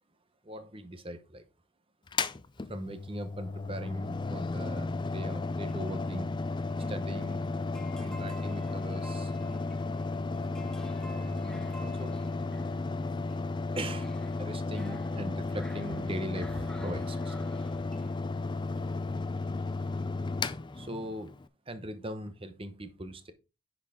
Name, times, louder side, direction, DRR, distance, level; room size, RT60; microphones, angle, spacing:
voice 1, 0.4-1.4 2.7-6.3 6.9-7.4 7.9-9.4 11.1-12.1 13.7-17.5 20.7-21.3 21.7-23.3, right 1 dB, 25° right, 10 dB, 0.9 m, -40 dB
Mechanical fan, 2.1-21.5, left 3 dB, 20° left, 0.4 m, -34 dB
sound 1, 5.2-18.2, equal, 5° left, 0.8 m, -49 dB
10.0 x 4.6 x 3.7 m, 0.29 s
head